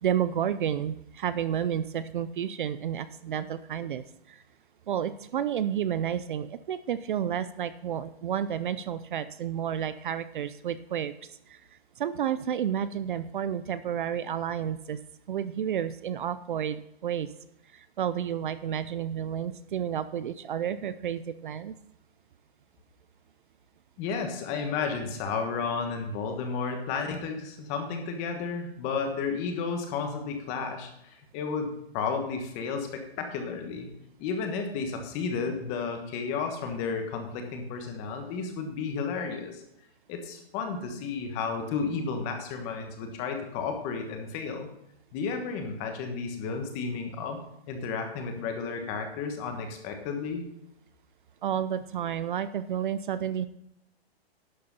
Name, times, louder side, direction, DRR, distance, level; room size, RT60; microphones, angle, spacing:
voice 1, 0.0-4.4 4.9-11.1 11.5-11.6 12.0-15.0 15.3-17.3 17.7-21.7 51.4-53.5, right 9 dB, 50° right, 14 dB, 0.5 m, -31 dB
voice 2, 24.0-33.9 34.2-39.6 40.1-44.7 45.1-47.4 47.7-50.4, left 5 dB, 20° left, 5 dB, 1.3 m, -32 dB
11.5 x 6.7 x 5.3 m, 0.81 s
hypercardioid pair, 165°, 32 cm